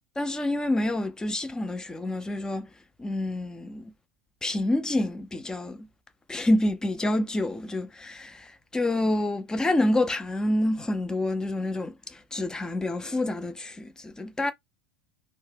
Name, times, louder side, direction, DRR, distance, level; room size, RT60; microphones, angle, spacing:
voice 1, 0.2-2.7 3.0-3.9 4.4-5.9 6.3-14.5, left 1 dB, 10° left, 0.5 m, -28 dB
2.1 x 2.0 x 3.2 m
hypercardioid pair, 100°, 6 cm